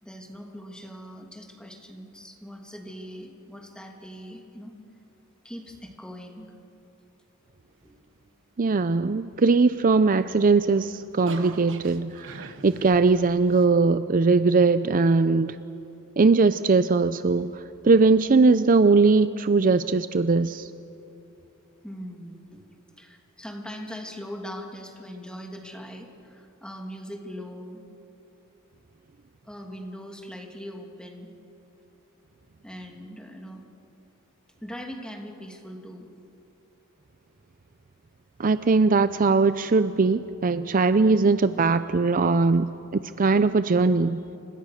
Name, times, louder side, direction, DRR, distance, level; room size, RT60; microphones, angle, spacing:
voice 1, 0.0-4.7 5.4-6.5 7.8-7.9 21.8-22.6 23.0-27.9 29.4-31.3 32.6-33.7 34.6-36.1, equal, 5° left, 1 dB, 2.8 m, -40 dB
voice 2, 8.6-15.6 16.2-20.7 38.4-44.2, right 4 dB, 40° right, 12 dB, 0.5 m, -20 dB
sound 1, 10.2-13.7, right 3 dB, 60° right, 1.3 m, -42 dB
29.0 x 26.0 x 6.6 m, 2.7 s
head